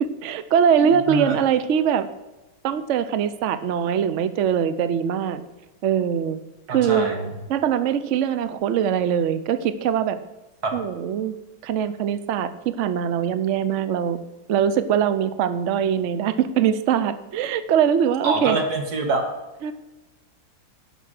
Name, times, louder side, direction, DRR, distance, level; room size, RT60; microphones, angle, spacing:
voice 1, 0.0-2.1 2.6-5.4 5.8-6.4 6.7-7.1 7.5-10.2 10.7-11.4 11.6-14.2 14.5-18.6 19.6-19.7, right 8 dB, 85° right, 12 dB, 0.6 m, -22 dB
voice 2, 0.8-1.4 6.7-7.3 10.6-10.8 18.2-19.2, right 3 dB, 50° right, 4 dB, 2.2 m, -25 dB
12.0 x 5.8 x 6.4 m, 1.1 s
omnidirectional pair, 2.1 m